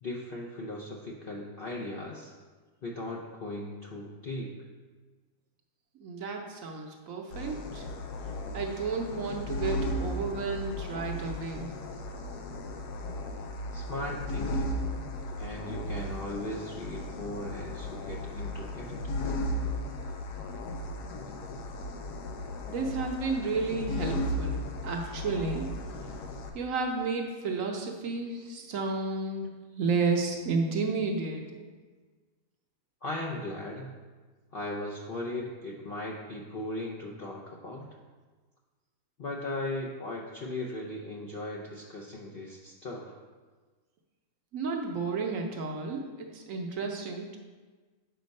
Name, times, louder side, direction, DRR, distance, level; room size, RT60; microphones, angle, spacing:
voice 1, 0.0-2.3 2.8-4.5 13.7-14.8 15.4-19.0 33.0-33.9 34.5-37.9 39.2-43.2, left 1 dB, 55° left, -3 dB, 0.6 m, -38 dB
voice 2, 6.0-7.9 8.5-11.7 22.7-25.7 26.5-31.7 44.5-47.4, right 4 dB, 60° right, 2 dB, 1.0 m, -32 dB
sound 1, 7.3-26.5, left 1 dB, 80° left, 1.3 m, -35 dB
6.7 x 4.5 x 5.2 m, 1.4 s
omnidirectional pair, 1.7 m